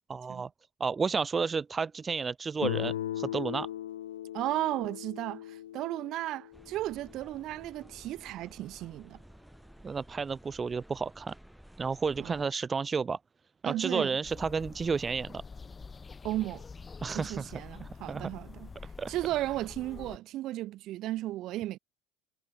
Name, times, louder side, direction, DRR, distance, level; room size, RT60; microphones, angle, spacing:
voice 1, 0.1-0.5 0.8-3.7 9.8-11.3 11.8-13.2 13.6-15.4 17.0-18.3 19.0-19.1, right 5 dB, 25° right, 0.6 m, -32 dB
Guitar, 2.6-7.4, left 12 dB, 85° left, 0.4 m, -38 dB
voice 2, 4.3-9.2 12.2-12.4 13.6-14.2 16.2-16.6 17.1-18.7 19.1-21.8, right 15 dB, 55° right, 2.8 m, -35 dB
sound 1, 6.5-12.4, equal, 5° right, 4.0 m, -54 dB
sound 2, 14.2-20.2, left 4 dB, 25° left, 1.3 m, -46 dB
hypercardioid pair, 75°, 0 cm